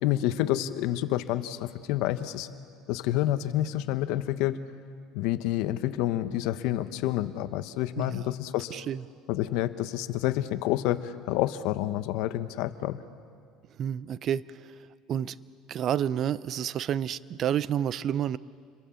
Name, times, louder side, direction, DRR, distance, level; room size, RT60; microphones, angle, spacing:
voice 1, 0.0-2.5 2.9-4.6 5.1-8.8 9.3-13.0, left 14 dB, 75° left, 11 dB, 1.1 m, -28 dB
voice 2, 8.7-9.0 13.8-14.7 15.1-15.4 15.7-18.4, right 9 dB, 45° right, 18 dB, 0.6 m, -29 dB
28.5 x 22.5 x 7.0 m, 2.2 s
supercardioid pair, 120°, 0 cm